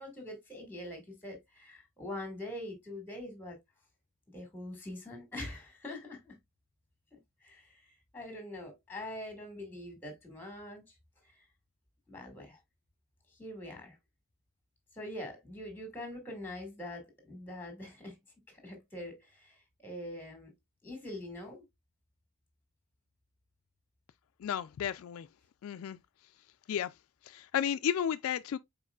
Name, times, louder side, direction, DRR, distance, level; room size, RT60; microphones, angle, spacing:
voice 1, 0.0-3.6 4.3-6.4 7.1-11.0 12.1-12.6 13.4-14.0 14.9-18.2 18.5-20.5 20.8-21.6, left 1 dB, 10° left, 2.0 m, -44 dB
voice 2, 24.4-25.3 25.6-26.0 26.7-26.9 27.2-28.6, left 9 dB, 70° left, 0.3 m, -33 dB
5.3 x 4.2 x 2.4 m
head